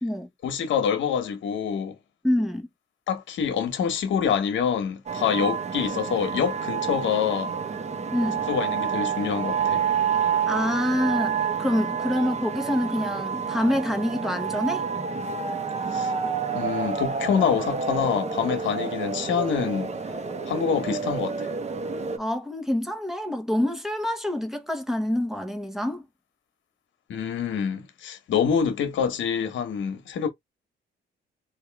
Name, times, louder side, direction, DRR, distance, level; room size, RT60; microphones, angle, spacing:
voice 1, 0.4-1.9 3.1-7.5 8.5-9.8 15.9-16.1 16.5-19.9 20.5-21.5 27.1-30.3, left 7 dB, 70° left, 1.2 m, -26 dB
voice 2, 2.2-2.7 8.1-8.4 10.5-14.9 22.2-26.0, left 1 dB, ahead, 1.2 m, -26 dB
sound 1, 5.1-22.2, right 6 dB, 35° right, 1.1 m, -29 dB
3.5 x 2.7 x 3.4 m
cardioid pair, 90°, 20 cm